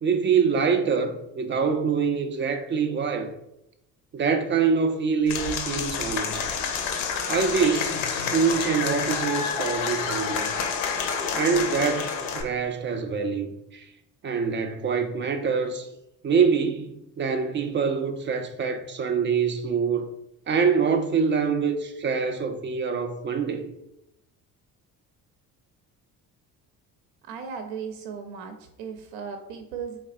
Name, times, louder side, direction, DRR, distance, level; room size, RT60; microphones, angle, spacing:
voice 1, 0.0-3.3 4.1-6.5 7.3-10.5 11.3-13.9 14.2-15.9 16.2-20.1 20.5-23.7, right 5 dB, 25° right, 0.3 m, -25 dB
Applause / Crowd, 5.3-12.4, left 6 dB, 65° left, 0.7 m, -28 dB
voice 2, 27.2-30.0, right 6 dB, 70° right, 0.6 m, -36 dB
3.5 x 3.3 x 2.4 m
hypercardioid pair, 55°, 48 cm